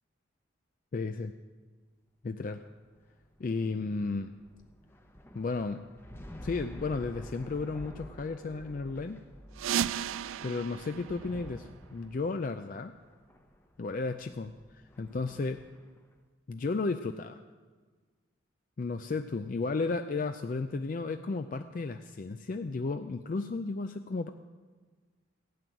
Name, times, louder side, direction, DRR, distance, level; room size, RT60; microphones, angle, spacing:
voice 1, 0.9-1.3 2.2-2.6 3.4-4.3 5.3-5.8 6.4-9.2 10.4-12.9 13.8-15.6 16.5-17.4 18.8-24.3, left 3 dB, 40° left, 8 dB, 0.4 m, -33 dB
sound 1, 2.6-16.1, equal, 10° left, 0.8 m, -50 dB
sound 2, 9.5-12.2, right 9 dB, 80° right, 0.3 m, -35 dB
15.5 x 6.1 x 9.2 m, 1.4 s
head